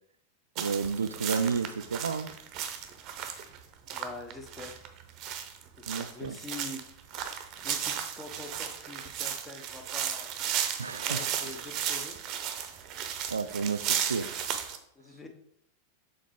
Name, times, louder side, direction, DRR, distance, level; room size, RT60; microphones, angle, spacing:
sound 1, 0.6-14.8, right 9 dB, 35° right, 0.7 m, -34 dB
voice 1, 0.6-2.3 5.9-6.4 10.8-11.3 13.3-14.3, right 5 dB, 70° right, 0.3 m, -31 dB
voice 2, 3.9-4.8 5.7-6.8 7.6-10.3 10.9-12.2 15.0-15.3, left 2 dB, 15° left, 0.9 m, -44 dB
6.8 x 3.8 x 3.6 m
figure-of-eight pair, 90°, 0 cm